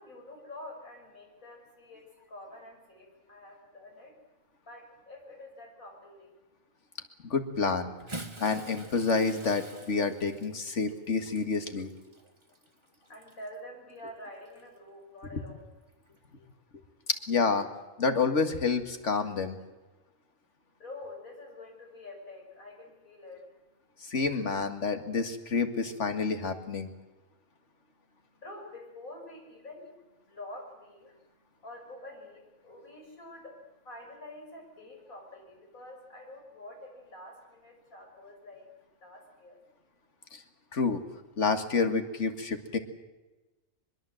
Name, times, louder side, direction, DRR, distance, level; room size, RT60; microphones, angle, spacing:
voice 1, 0.0-4.2 4.6-6.4 12.6-15.6 20.4-24.2 27.2-38.7 39.0-39.6, left 1 dB, 85° left, 1 dB, 6.5 m, -48 dB
voice 2, 7.2-7.9 8.4-11.9 15.3-15.4 17.1-17.7 18.0-19.6 24.0-26.9 40.3-40.4 40.7-41.0 41.4-42.8, left 4 dB, 60° left, 8 dB, 2.2 m, -28 dB
Bathtub (filling or washing) / Splash splatter, 7.9-13.6 14.5-14.6 16.1-16.2, right 1 dB, 20° right, 1.6 m, -47 dB
23.5 x 22.0 x 7.8 m, 1.1 s
omnidirectional pair, 1.4 m